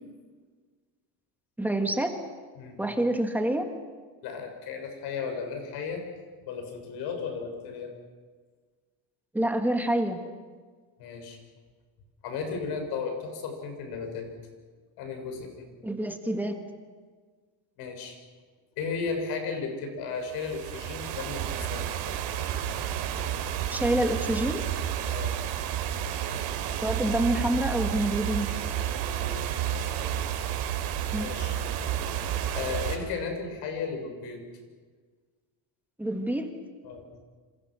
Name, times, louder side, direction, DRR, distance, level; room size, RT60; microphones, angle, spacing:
voice 1, 1.6-2.1 2.8-3.6 9.3-10.2 15.8-16.6 23.7-24.6 26.8-28.5 31.1-31.3 36.0-36.5, right 1 dB, 5° right, 4 dB, 1.8 m, -27 dB
voice 2, 4.2-6.0 6.5-7.9 11.0-11.4 12.2-14.3 15.0-15.7 17.8-18.2 18.8-21.9 25.1-25.3 28.8-30.0 31.2-31.6 32.5-34.5 36.8-37.1, left 5 dB, 65° left, 4 dB, 6.9 m, -35 dB
sound 1, 20.3-33.0, right 10 dB, 80° right, 3.9 m, -31 dB
27.5 x 27.5 x 6.4 m, 1.5 s
cardioid pair, 170°, 41 cm